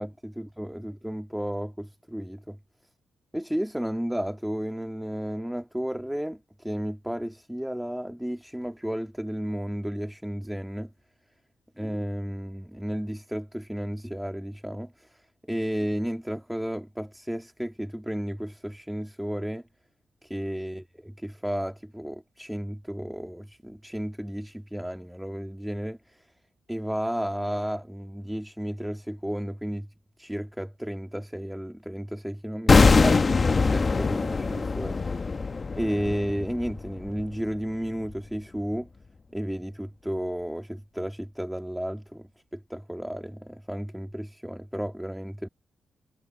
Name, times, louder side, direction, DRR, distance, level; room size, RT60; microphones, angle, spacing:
voice 1, 0.0-2.6 3.3-10.9 11.8-15.2 15.5-19.6 20.2-26.3 26.7-29.9 30.2-35.3 35.8-38.9 39.3-45.5, equal, 5° right, 1.8 m, -33 dB
sound 1, 32.7-37.7 38.0-38.1, left 4 dB, 35° left, 1.3 m, -22 dB
cardioid pair, 80°, 0 cm